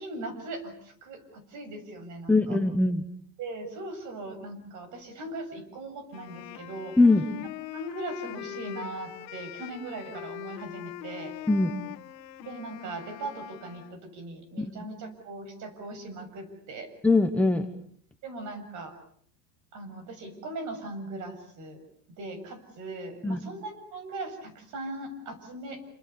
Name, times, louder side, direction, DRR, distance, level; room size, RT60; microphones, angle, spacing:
voice 1, 0.0-2.6 3.4-7.0 7.7-11.3 12.4-16.9 18.2-18.9 19.7-21.8 22.2-25.8, right 2 dB, 35° right, 9 dB, 7.3 m, -39 dB
voice 2, 2.3-3.0 7.0-7.3 11.5-11.7 14.6-14.8 17.0-17.7 23.2-23.4, left 2 dB, 5° left, 4 dB, 1.1 m, -21 dB
Wind instrument woodwind instrument, 6.1-14.0, left 16 dB, 80° left, 2.0 m, -42 dB
29.0 x 26.5 x 6.9 m, 0.63 s
supercardioid pair, 155°, 49 cm